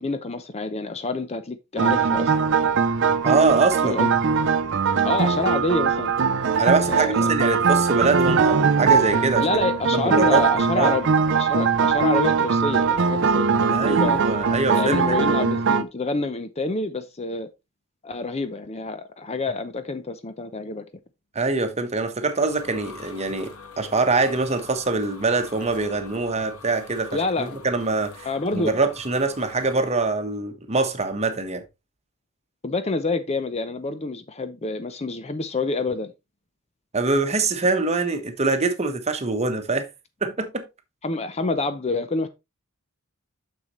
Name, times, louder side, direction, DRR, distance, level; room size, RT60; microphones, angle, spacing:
voice 1, 0.0-2.3 3.8-4.1 5.0-6.1 6.9-7.3 9.4-11.1 11.3-14.2 14.8-17.5 18.0-20.8 27.1-27.6 28.2-28.8 32.6-36.1 41.0-42.3, left 3 dB, 30° left, 0.6 m, -27 dB
sound 1, 1.8-15.8, right 5 dB, 55° right, 0.5 m, -21 dB
voice 2, 3.2-4.0 6.6-9.5 9.9-10.4 10.8-10.9 13.7-15.2 21.3-28.3 28.5-31.6 36.9-39.8 40.2-40.7, right 3 dB, 30° right, 1.0 m, -24 dB
sound 2, 21.9-29.9, left 5 dB, 75° left, 1.3 m, -44 dB
6.9 x 6.5 x 3.1 m
head